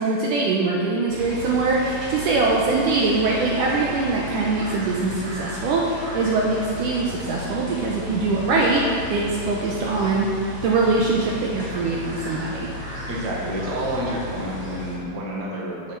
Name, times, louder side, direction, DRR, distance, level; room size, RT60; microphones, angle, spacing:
voice 1, 0.0-10.3 10.6-12.7, right 3 dB, 75° right, -3 dB, 2.1 m, -22 dB
sound 1, 1.1-15.0, left 2 dB, 30° right, 1.9 m, -34 dB
voice 2, 13.1-15.9, right 1 dB, 45° right, -4 dB, 1.4 m, -29 dB
7.6 x 6.9 x 6.4 m, 2.3 s
omnidirectional pair, 4.3 m